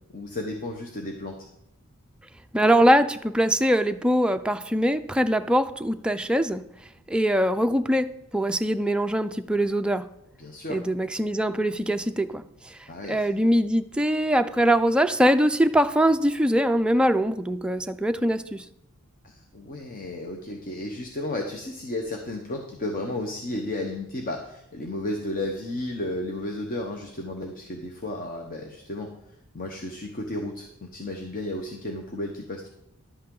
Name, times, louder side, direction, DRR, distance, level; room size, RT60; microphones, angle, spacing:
voice 1, 0.1-1.5 10.4-10.8 12.9-13.3 19.2-29.1 29.5-32.7, left 1 dB, 40° left, 2 dB, 0.9 m, -33 dB
voice 2, 2.5-6.6 7.1-8.1 8.3-10.1 10.7-12.8 13.1-18.6, equal, 5° right, 7 dB, 0.3 m, -22 dB
11.5 x 8.6 x 3.8 m, 0.81 s
head